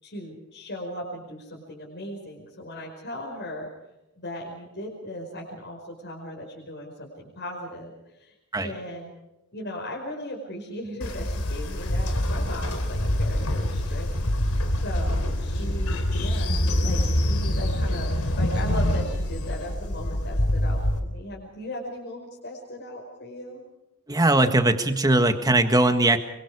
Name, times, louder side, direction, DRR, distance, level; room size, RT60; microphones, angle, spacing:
voice 1, 0.0-3.7 4.2-9.1 9.5-14.1 14.8-16.6 16.8-23.6, left 1 dB, 50° left, -2 dB, 5.3 m, -37 dB
Train, 11.0-21.0, left 1 dB, 85° left, 3.4 m, -25 dB
voice 2, 24.1-26.2, right 2 dB, 15° right, 7 dB, 1.7 m, -20 dB
26.0 x 24.0 x 4.9 m, 0.92 s
head